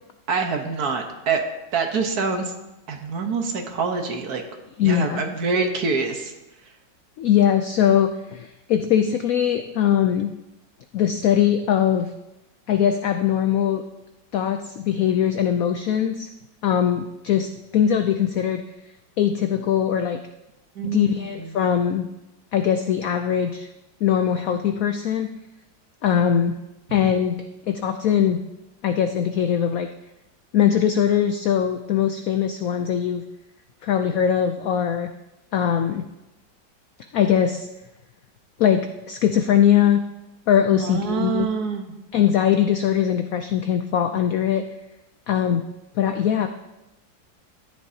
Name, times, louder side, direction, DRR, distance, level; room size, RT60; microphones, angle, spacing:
voice 1, 0.3-1.4 1.7-2.5 2.9-4.4 4.8-6.3 20.8-21.6 40.7-41.9, right 5 dB, 60° right, 4 dB, 1.5 m, -25 dB
voice 2, 4.8-5.2 7.2-10.3 10.9-12.1 12.7-13.8 14.3-16.3 16.6-18.6 19.2-20.2 20.8-22.1 22.5-23.7 24.0-25.3 26.0-26.6 26.9-28.4 28.8-29.9 30.5-33.2 33.8-35.1 35.5-36.1 37.1-37.7 38.6-40.0 40.5-41.5 42.1-44.7 45.3-45.6 46.0-46.5, left 9 dB, 80° left, 8 dB, 0.7 m, -21 dB
13.5 x 10.5 x 2.8 m, 0.96 s
omnidirectional pair, 2.0 m